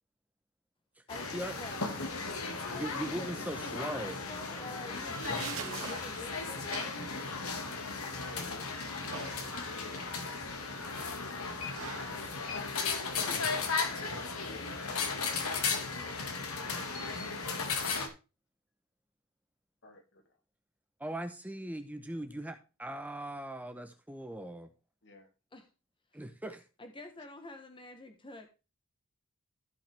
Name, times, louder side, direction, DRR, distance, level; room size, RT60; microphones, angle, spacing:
sound 1, 1.1-18.1, left 4 dB, 85° left, 2.0 m, -36 dB
voice 1, 1.1-1.9 2.7-7.2 13.3-13.4 25.5-25.7 26.1-26.2 26.8-28.5, left 2 dB, 25° left, 1.3 m, -48 dB
voice 2, 2.5-4.2 21.0-24.7 26.1-26.6, right 1 dB, 5° right, 0.9 m, -40 dB
sound 2, 4.8-13.8, right 5 dB, 75° right, 1.9 m, -47 dB
voice 3, 8.1-10.1 10.4-11.2 13.0-13.7 14.4-15.5 19.8-20.2 25.0-25.3, left 2 dB, 55° left, 2.3 m, -54 dB
14.5 x 5.7 x 3.4 m
head